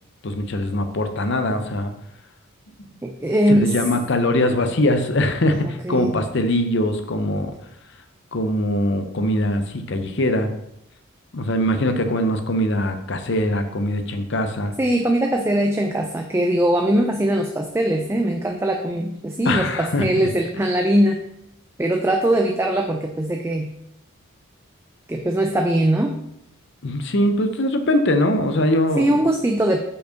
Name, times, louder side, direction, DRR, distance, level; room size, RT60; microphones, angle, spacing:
voice 1, 0.2-1.9 2.8-2.9 3.5-7.5 8.3-10.5 11.3-14.7 19.5-20.3 26.8-29.2, left 1 dB, 55° left, 7 dB, 0.7 m, -22 dB
voice 2, 3.0-3.8 5.6-6.2 14.8-21.2 21.8-23.7 25.1-26.2 29.0-29.8, right 1 dB, 10° right, 3 dB, 0.3 m, -21 dB
5.4 x 4.5 x 5.1 m, 0.80 s
head